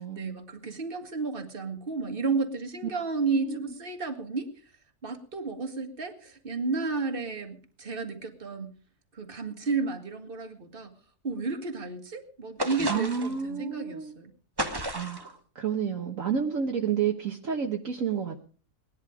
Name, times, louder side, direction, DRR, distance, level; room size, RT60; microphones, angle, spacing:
voice 1, 0.1-4.5 5.0-8.7 9.1-10.9 11.2-14.3, right 4 dB, 35° right, 6 dB, 2.0 m, -32 dB
sound 1, 12.6-13.4 14.6-15.3, right 1 dB, 15° right, 1.1 m, -32 dB
voice 2, 12.9-14.1 14.9-18.4, right 7 dB, 60° right, 2 dB, 1.6 m, -30 dB
19.0 x 11.0 x 5.0 m, 0.41 s
omnidirectional pair, 1.6 m